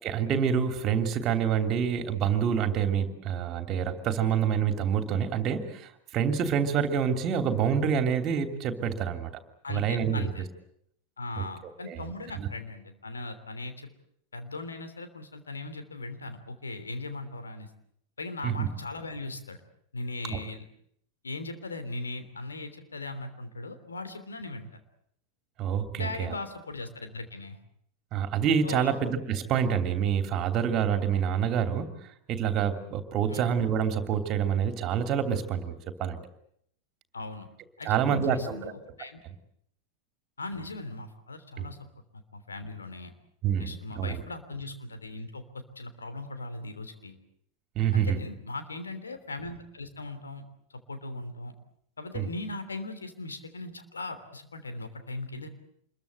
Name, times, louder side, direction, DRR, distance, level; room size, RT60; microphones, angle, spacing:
voice 1, 0.0-9.3 9.7-10.3 11.4-11.5 11.9-12.0 12.4-12.5 18.4-18.7 20.3-20.4 25.6-26.3 28.1-31.9 32.3-36.2 37.8-38.7 41.6-41.7 43.4-44.2 47.7-48.2 52.1-52.3, right 8 dB, 35° right, 8 dB, 3.0 m, -27 dB
voice 2, 9.6-10.5 11.2-13.9 14.3-17.7 18.2-19.6 19.9-20.6 21.2-24.7 25.9-27.6 28.6-29.0 33.3-33.5 37.1-37.5 37.8-39.2 40.4-41.8 42.1-43.1 43.6-47.2 47.9-50.4 50.9-51.5 52.0-55.5, left 2 dB, 75° left, 8 dB, 3.3 m, -39 dB
27.0 x 22.0 x 8.0 m, 0.69 s
figure-of-eight pair, 90°, 0 cm